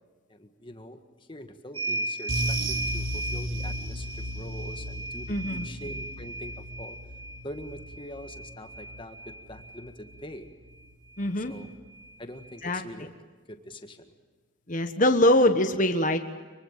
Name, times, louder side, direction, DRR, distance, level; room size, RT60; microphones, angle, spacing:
voice 1, 0.3-7.0 7.4-10.5 11.4-11.7 12.2-13.1 13.5-14.1, left 1 dB, 25° left, 6 dB, 1.8 m, -44 dB
sound 1, 1.7-9.9 11.1-11.2 11.5-12.6, right 1 dB, 25° right, 2.7 m, -37 dB
sound 2, 2.3-11.0 11.2-11.5 11.8-11.9, right 1 dB, 80° right, 3.5 m, -36 dB
voice 2, 5.3-5.7 11.2-11.5 12.6-12.8 14.7-16.2, left 1 dB, 40° left, 6 dB, 1.4 m, -23 dB
24.5 x 24.0 x 7.5 m, 1.5 s
head